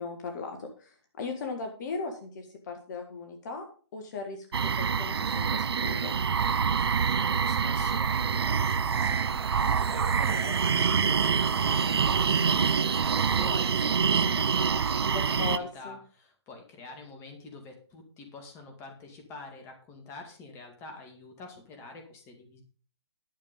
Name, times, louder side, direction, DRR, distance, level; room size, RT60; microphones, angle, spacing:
voice 1, 0.0-3.7 3.9-6.2 15.1-16.0, left 4 dB, 40° left, 4 dB, 1.8 m, -38 dB
sound 1, 4.5-15.6, right 6 dB, 65° right, 0.6 m, -26 dB
voice 2, 7.0-22.6, left 3 dB, 20° left, 3 dB, 2.3 m, -46 dB
11.5 x 6.8 x 5.3 m, 0.41 s
figure-of-eight pair, 140°, 14 cm